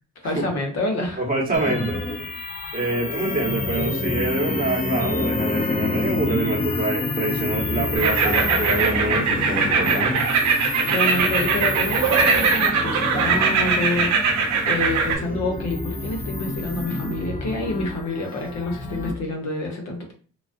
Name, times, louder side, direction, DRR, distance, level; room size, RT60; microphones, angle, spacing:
voice 1, 0.2-1.2 10.8-14.4 14.7-20.1, left 2 dB, 60° left, 2 dB, 0.8 m, -28 dB
voice 2, 1.2-2.0 2.7-10.2, right 2 dB, 30° right, -2 dB, 1.0 m, -26 dB
sound 1, 1.5-19.1, left 3 dB, 30° left, 0.5 m, -28 dB
sound 2, 8.0-15.2, right 5 dB, 65° right, 0.7 m, -21 dB
2.3 x 2.2 x 2.5 m, 0.40 s
cardioid pair, 90°, 30 cm